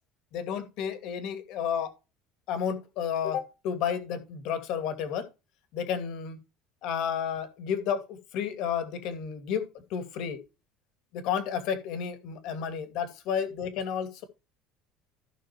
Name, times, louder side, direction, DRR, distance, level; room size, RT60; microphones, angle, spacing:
voice 1, 0.3-1.9 2.5-5.3 5.7-6.4 6.8-9.6 9.9-10.4 11.1-14.2, left 8 dB, 60° left, 2.4 m, -31 dB
15.5 x 6.0 x 3.0 m
cardioid pair, 160°, 0 cm